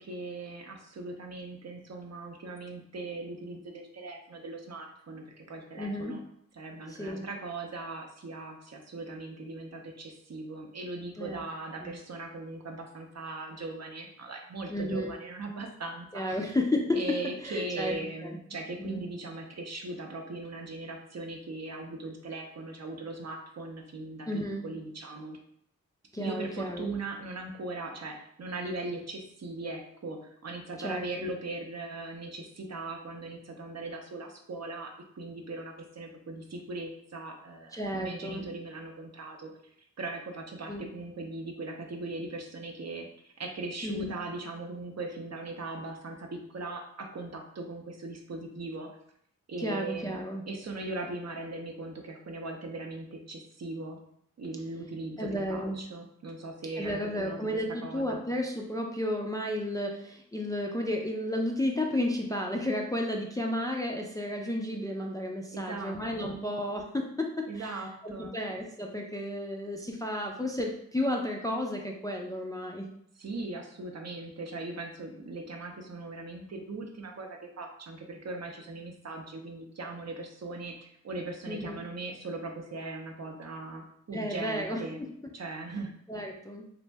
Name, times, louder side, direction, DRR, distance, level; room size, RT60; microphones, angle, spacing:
voice 1, 0.0-6.2 6.5-16.4 16.9-25.4 26.2-39.5 40.0-48.9 49.5-50.2 50.5-54.0 54.4-58.2 65.5-66.4 67.5-68.3 73.2-85.0 85.3-85.9, right 2 dB, 50° right, 2 dB, 0.6 m, -39 dB
voice 2, 5.8-6.2 6.9-7.3 11.2-11.4 11.8-12.0 14.7-15.1 16.1-17.2 17.4-17.9 18.2-18.4 18.8-19.0 24.3-24.6 26.1-26.9 30.8-31.3 37.7-38.4 40.7-40.9 43.8-44.1 49.6-50.4 55.2-55.8 56.8-72.9 81.5-81.8 84.1-85.1 86.1-86.6, left 1 dB, 10° left, 1 dB, 0.3 m, -32 dB
2.6 x 2.1 x 3.3 m, 0.70 s
cardioid pair, 55°, 33 cm